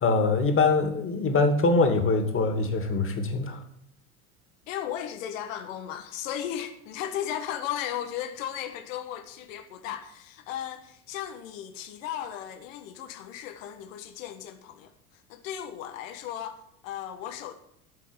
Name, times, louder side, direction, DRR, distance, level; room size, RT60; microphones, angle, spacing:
voice 1, 0.0-3.6, left 3 dB, 30° left, 5 dB, 2.6 m, -23 dB
voice 2, 4.7-14.9 15.3-17.5, left 10 dB, 60° left, 7 dB, 1.5 m, -36 dB
13.5 x 5.9 x 7.9 m, 0.73 s
hypercardioid pair, 80°, 44 cm